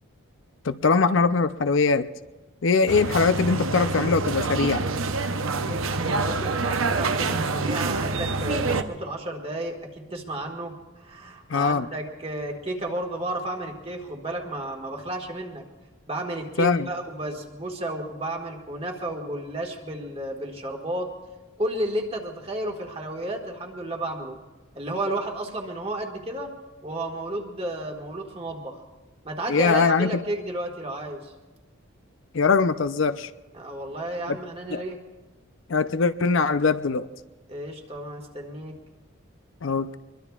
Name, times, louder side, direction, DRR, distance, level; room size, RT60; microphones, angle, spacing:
voice 1, 0.6-2.1 2.6-4.9 11.5-11.9 16.6-16.9 29.5-30.2 32.3-33.3 34.3-34.4 34.7-34.8 35.7-37.1 39.6-40.0, left 4 dB, 70° left, 11 dB, 0.5 m, -22 dB
sound 1, 2.9-8.8, right 3 dB, 80° right, 0.8 m, -26 dB
voice 2, 5.6-15.6 16.1-21.1 21.6-24.4 24.8-26.5 26.8-28.8 29.2-31.3 33.5-35.0 37.5-38.8, right 1 dB, 30° right, 2 dB, 1.7 m, -32 dB
25.0 x 22.0 x 2.4 m, 1.2 s
head